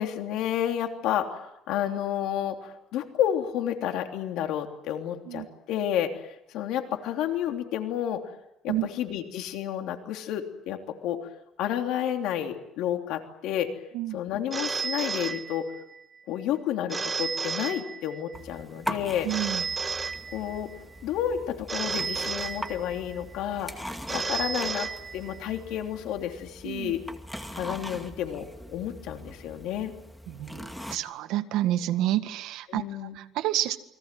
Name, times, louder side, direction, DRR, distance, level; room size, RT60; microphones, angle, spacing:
voice 1, 0.0-8.2 8.6-11.3 11.6-13.8 14.1-15.7 16.3-19.3 20.3-20.7 21.0-23.7 24.1-27.0 27.5-29.9 32.7-33.2, left 10 dB, 75° left, 4 dB, 3.2 m, -31 dB
Telephone, 14.5-16.0 16.9-18.4 19.3-20.8 21.7-23.2 24.1-25.6, right 5 dB, 20° right, 1.6 m, -32 dB
sound 1, 18.3-31.0, equal, 5° left, 2.3 m, -41 dB
voice 2, 19.2-19.6 26.6-26.9 30.3-33.8, right 14 dB, 80° right, 9 dB, 1.7 m, -29 dB
29.0 x 23.0 x 7.8 m, 0.87 s
cardioid pair, 155°, 0 cm